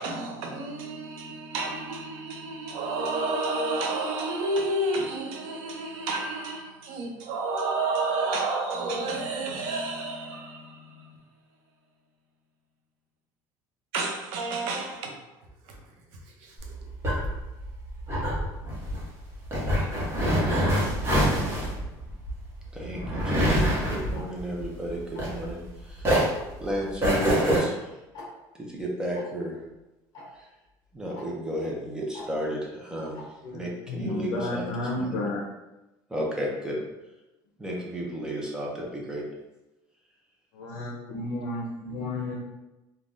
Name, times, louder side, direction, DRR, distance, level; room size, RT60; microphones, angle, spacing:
voice 1, 0.0-11.2 13.9-15.1 15.7-15.8 16.4-16.5, right 2 dB, 90° right, 0.6 m, -30 dB
sound 1, 16.6-25.7 26.0-27.6, equal, 30° right, 0.9 m, -26 dB
voice 2, 22.7-26.3 26.6-28.0 28.6-29.6 30.4-30.5 30.9-33.2 33.5-35.2 36.1-36.8 37.6-39.2, equal, 10° right, 0.5 m, -33 dB
Tick-tock, 24.1-24.3 25.1-25.4 26.1-26.4 27.1-27.3 27.5-27.6 28.1-28.3 29.1-29.2 30.1-30.3 31.1-31.3 32.1-32.3 33.1-33.3, left 3 dB, 45° left, 0.9 m, -43 dB
voice 3, 33.4-35.4 40.5-42.3, left 2 dB, 75° left, 0.6 m, -32 dB
3.4 x 2.2 x 2.5 m
cardioid pair, 155°, 9 cm